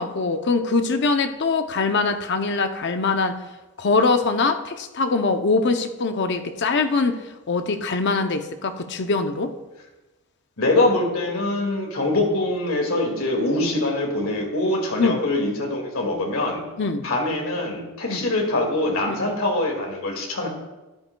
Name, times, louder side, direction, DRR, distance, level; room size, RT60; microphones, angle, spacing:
voice 1, 0.0-3.4 3.8-7.2 7.5-9.5 15.0-15.2 16.8-17.1 18.1-18.3 19.1-19.2, left 4 dB, 50° left, 8 dB, 0.6 m, -23 dB
voice 2, 10.6-16.6 17.0-20.5, left 2 dB, 65° left, 1 dB, 2.1 m, -23 dB
13.5 x 10.5 x 2.3 m, 1.1 s
head